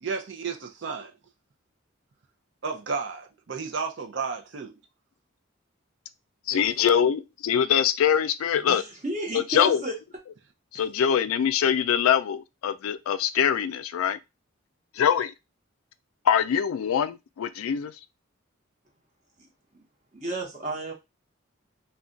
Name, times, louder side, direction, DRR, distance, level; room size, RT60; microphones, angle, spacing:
voice 1, 0.0-1.1 2.6-4.7 6.5-6.7, right 5 dB, 55° right, 0.5 m, -32 dB
voice 2, 6.5-8.8 9.3-9.8 10.7-14.2 15.0-15.3 16.3-17.9, left 8 dB, 85° left, 0.3 m, -23 dB
voice 3, 8.7-9.9 19.7-19.8 20.1-20.9, right 1 dB, 35° right, 0.9 m, -32 dB
2.4 x 2.2 x 3.7 m
head